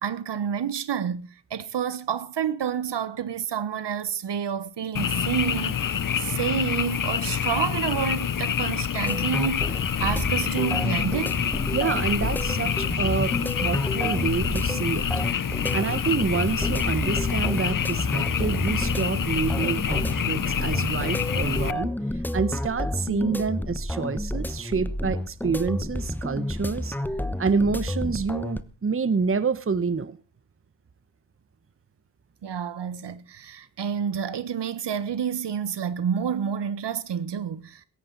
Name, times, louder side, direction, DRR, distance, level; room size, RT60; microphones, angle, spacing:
voice 1, 0.0-11.4 32.4-37.9, right 8 dB, 60° right, 1.3 m, -29 dB
Frog, 5.0-21.7, left 8 dB, 45° left, 0.9 m, -27 dB
sound 1, 9.1-28.6, left 1 dB, 5° left, 1.1 m, -30 dB
voice 2, 11.7-15.1 15.7-21.9 22.3-27.0 27.4-30.2, right 5 dB, 25° right, 1.1 m, -27 dB
17.5 x 14.0 x 4.0 m
supercardioid pair, 55°, 47 cm